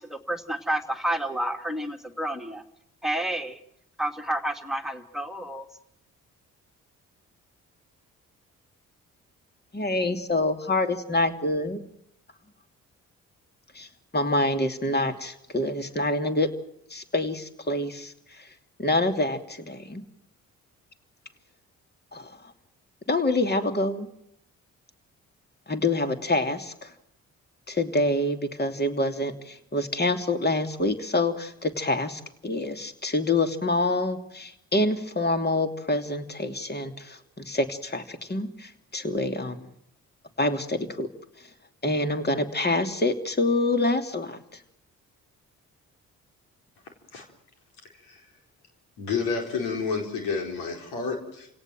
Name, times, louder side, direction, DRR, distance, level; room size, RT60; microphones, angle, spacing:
voice 1, 0.1-2.6 3.0-3.6 4.0-5.7, right 1 dB, ahead, 6 dB, 2.8 m, -30 dB
voice 2, 9.7-11.8 13.7-13.9 14.1-16.5 16.9-18.5 18.8-20.0 22.1-22.5 23.1-24.1 25.7-26.9 27.7-39.7 40.4-41.1 41.8-44.4, left 2 dB, 25° left, 7 dB, 3.0 m, -26 dB
voice 3, 49.0-51.5, left 5 dB, 80° left, 3 dB, 4.5 m, -30 dB
29.5 x 17.5 x 7.7 m, 0.76 s
hypercardioid pair, 45°, 38 cm